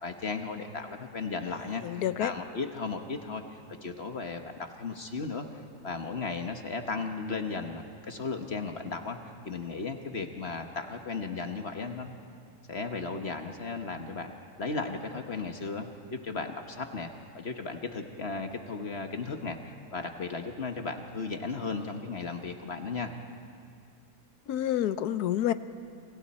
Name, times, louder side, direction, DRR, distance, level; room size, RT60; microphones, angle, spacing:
voice 1, 0.0-5.4 5.8-9.2 9.4-12.2 12.7-17.1 17.3-23.1, left 4 dB, 45° left, 5 dB, 1.4 m, -35 dB
voice 2, 1.8-2.3 24.5-25.5, left 11 dB, 90° left, 13 dB, 1.3 m, -28 dB
29.5 x 26.5 x 4.3 m, 2.3 s
omnidirectional pair, 1.6 m